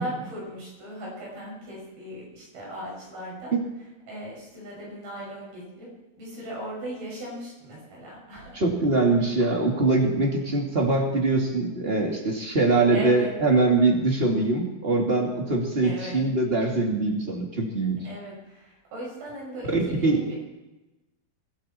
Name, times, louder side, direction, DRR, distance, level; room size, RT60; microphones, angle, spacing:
voice 1, 0.0-3.5 4.1-5.9 6.2-8.6 12.9-13.3 15.8-16.3 18.0-20.2, right 1 dB, 75° right, -4 dB, 8.2 m, -38 dB
voice 2, 8.5-18.0 19.7-20.2, right 2 dB, 20° right, 0 dB, 1.9 m, -23 dB
24.0 x 12.5 x 4.4 m, 1.1 s
omnidirectional pair, 4.3 m